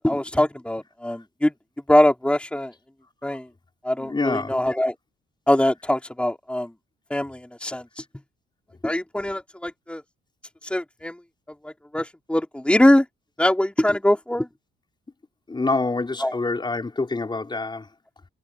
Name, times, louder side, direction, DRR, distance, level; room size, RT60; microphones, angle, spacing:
voice 1, 0.0-1.5 1.9-2.7 3.2-3.4 3.8-4.9 5.5-6.7 7.1-8.0 8.8-10.0 10.7-11.1 11.6-13.0 13.4-14.5 16.2-16.3, left 1 dB, 5° left, 3.2 m, -22 dB
voice 2, 4.0-4.6 15.5-17.9, left 3 dB, 20° left, 4.8 m, -26 dB
cardioid pair, 90°, 20 cm